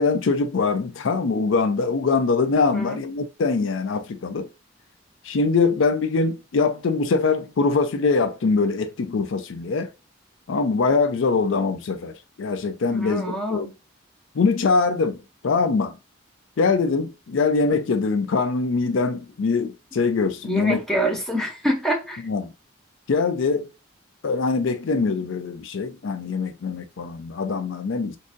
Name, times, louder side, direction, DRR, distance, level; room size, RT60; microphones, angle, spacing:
voice 1, 0.0-4.5 5.2-9.9 10.5-13.2 13.5-13.7 14.4-15.2 15.4-16.0 16.6-20.8 22.2-22.5 23.1-23.7 24.2-28.2, left 4 dB, 75° left, 0.4 m, -23 dB
voice 2, 12.9-13.7 20.4-22.2, equal, ahead, 0.7 m, -26 dB
3.7 x 2.6 x 2.5 m
head